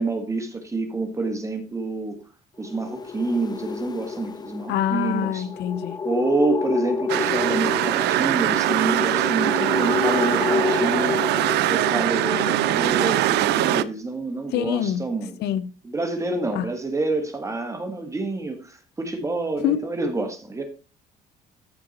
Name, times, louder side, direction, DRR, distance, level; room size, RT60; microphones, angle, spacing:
voice 1, 0.0-2.2 2.6-5.5 6.0-15.4 15.8-20.6, right 3 dB, 20° right, 1.9 m, -28 dB
sound 1, 2.6-12.5, left 5 dB, 25° left, 0.6 m, -29 dB
voice 2, 4.7-6.0 14.5-15.0 15.4-15.7 16.5-16.6 19.6-19.8, left 11 dB, 80° left, 1.0 m, -24 dB
sound 2, 7.1-13.8, right 14 dB, 80° right, 0.6 m, -22 dB
14.5 x 4.9 x 4.3 m
cardioid pair, 110°, 17 cm